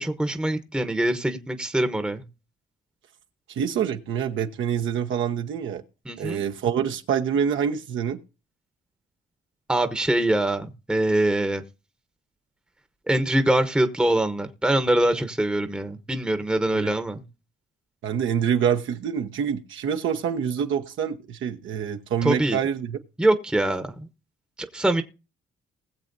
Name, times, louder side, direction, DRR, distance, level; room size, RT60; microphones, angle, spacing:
voice 1, 0.0-2.2 6.1-6.4 9.7-11.6 13.1-17.2 22.2-22.6 23.2-24.0 24.6-25.0, right 1 dB, 5° right, 1.0 m, -23 dB
voice 2, 3.5-5.8 6.2-8.2 16.7-16.9 18.0-23.0, right 8 dB, 80° right, 1.1 m, -26 dB
20.0 x 7.3 x 2.7 m
cardioid pair, 90°, 20 cm